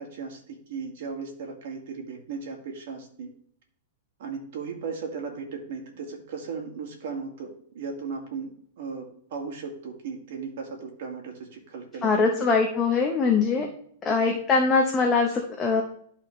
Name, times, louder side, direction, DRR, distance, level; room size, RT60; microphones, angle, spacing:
voice 1, 0.0-3.3 4.2-8.5 8.8-12.3 13.6-13.7 14.3-14.4, right 5 dB, 65° right, 1 dB, 1.9 m, -36 dB
voice 2, 12.0-13.7 14.0-15.8, left 4 dB, 20° left, 1 dB, 0.9 m, -22 dB
12.0 x 4.1 x 3.2 m, 0.63 s
hypercardioid pair, 150°, 0 cm